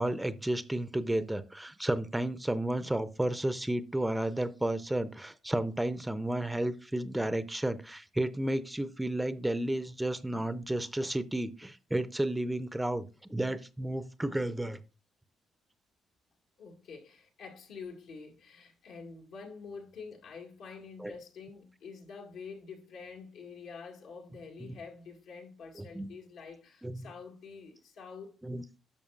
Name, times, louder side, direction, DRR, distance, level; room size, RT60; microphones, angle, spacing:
voice 1, 0.0-14.8 21.0-21.1 24.6-24.7 25.9-26.1 26.8-27.1 28.4-28.6, right 1 dB, 10° right, 0.5 m, -32 dB
voice 2, 16.6-28.4, left 5 dB, 85° left, 2.0 m, -47 dB
11.0 x 6.7 x 2.4 m
cardioid pair, 90°, 0 cm